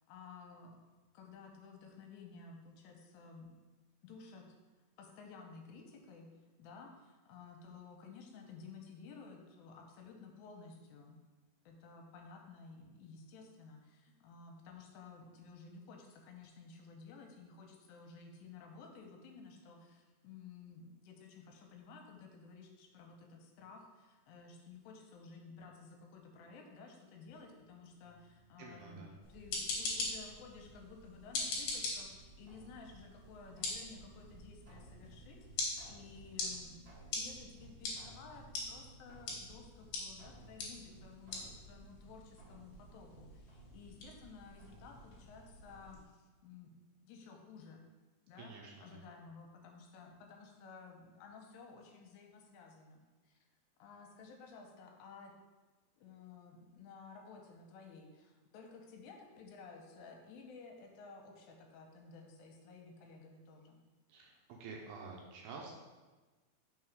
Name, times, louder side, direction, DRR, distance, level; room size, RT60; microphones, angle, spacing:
voice 1, 0.1-0.8 1.1-3.5 4.0-4.6 5.0-6.3 6.6-11.2 11.7-36.8 37.1-46.7 47.0-47.9 48.3-53.4 53.8-55.3 56.0-63.8, left 4 dB, 85° left, 2 dB, 2.8 m, -54 dB
sound 1, 27.3-45.8, right 2 dB, 45° right, 1.7 m, -61 dB
voice 2, 28.6-29.1 48.4-49.0 64.1-65.8, right 4 dB, 80° right, -1 dB, 2.4 m, -49 dB
sound 2, 29.2-46.0, left 3 dB, 65° left, 2.2 m, -44 dB
6.1 x 3.8 x 4.7 m, 1.3 s
omnidirectional pair, 5.0 m